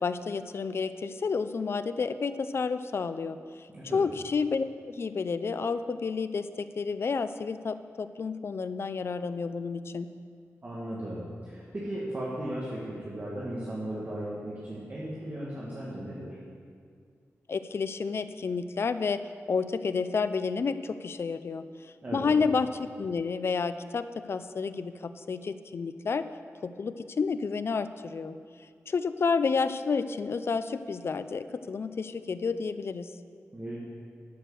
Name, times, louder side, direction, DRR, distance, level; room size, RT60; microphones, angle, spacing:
voice 1, 0.0-3.4 3.9-10.1 17.5-19.2 19.5-21.6 22.1-26.3 26.6-28.4 28.9-33.1, left 5 dB, 50° left, 12 dB, 0.5 m, -30 dB
voice 2, 10.6-16.4 22.0-22.4 33.5-33.8, right 1 dB, 30° right, -7 dB, 2.0 m, -36 dB
11.5 x 6.5 x 6.8 m, 2.1 s
wide cardioid pair, 110°, 5 cm